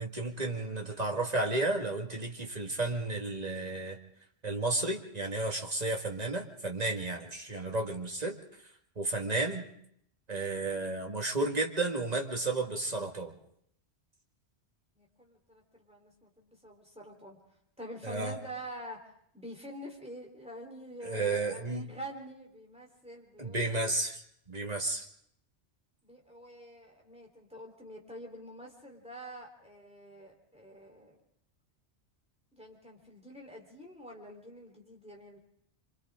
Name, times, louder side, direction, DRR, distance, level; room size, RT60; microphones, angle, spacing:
voice 1, 0.0-4.0 4.4-8.4 9.0-9.6 10.3-13.3 18.0-18.3 21.1-21.9 23.4-24.2 24.5-25.0, right 2 dB, 35° right, 1 dB, 2.1 m, -32 dB
voice 2, 14.9-17.4 17.8-19.1 19.3-23.8 26.0-31.2 32.5-35.4, equal, 5° right, 0 dB, 3.9 m, -47 dB
27.0 x 25.0 x 3.8 m, 0.71 s
omnidirectional pair, 1.2 m